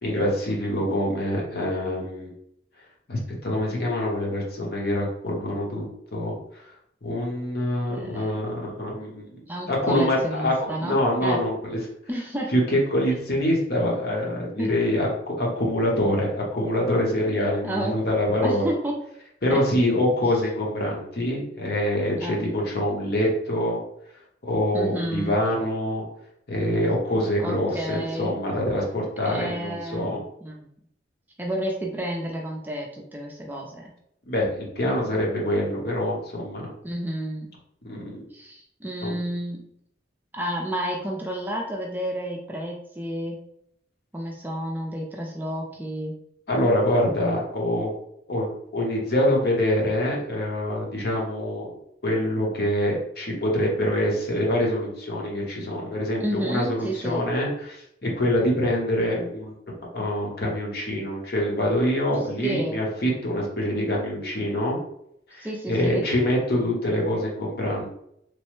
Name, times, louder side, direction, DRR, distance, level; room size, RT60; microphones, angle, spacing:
voice 1, 0.0-2.3 3.1-5.8 6.1-6.3 7.0-9.3 9.7-11.8 12.5-18.7 19.4-23.8 24.4-26.0 26.5-30.2 34.3-36.7 37.8-38.2 39.0-39.2 46.5-47.9 48.3-51.7 52.0-59.5 59.9-64.8 65.3-67.9, left 1 dB, 60° left, -2 dB, 0.8 m, -25 dB
voice 2, 7.9-8.5 9.5-11.4 12.1-12.5 14.6-14.7 17.6-18.0 18.4-18.9 19.5-19.6 22.2-22.4 24.7-25.4 27.4-28.3 29.3-30.7 31.4-33.9 36.8-37.5 38.3-39.6 40.3-43.4 44.1-46.1 56.2-57.3 62.4-62.8 65.4-66.1, right 1 dB, 10° right, -1 dB, 0.3 m, -31 dB
3.0 x 2.0 x 3.0 m, 0.73 s
head